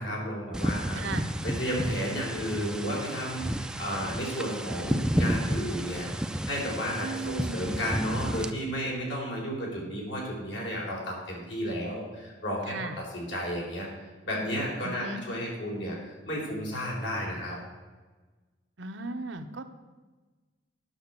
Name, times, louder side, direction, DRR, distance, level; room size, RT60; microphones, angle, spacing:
voice 1, 0.0-1.0 1.4-6.1 6.4-17.6, equal, 75° left, -3 dB, 4.2 m, -33 dB
sound 1, 0.5-8.5, equal, 5° right, 0.4 m, -32 dB
voice 2, 0.9-1.3 7.0-7.8 12.7-13.0 14.8-15.2 18.8-19.6, right 3 dB, 85° right, 7 dB, 0.9 m, -36 dB
10.0 x 6.0 x 8.1 m, 1.3 s
head